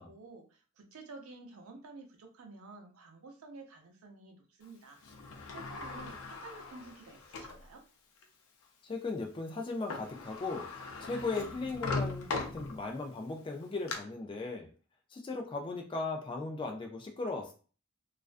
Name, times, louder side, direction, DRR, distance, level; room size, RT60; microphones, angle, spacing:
voice 1, 0.0-5.0 5.5-7.8, right 3 dB, 85° right, 3 dB, 0.5 m, -51 dB
Sliding door, 5.0-7.6 8.2-8.3 9.6-9.7 9.9-13.1 13.5-14.0, left 3 dB, 85° left, 0.5 m, -39 dB
voice 2, 8.8-10.7 11.0-14.7 15.1-17.5, left 3 dB, 25° left, 1 dB, 0.3 m, -37 dB
2.4 x 2.1 x 2.4 m, 0.38 s
head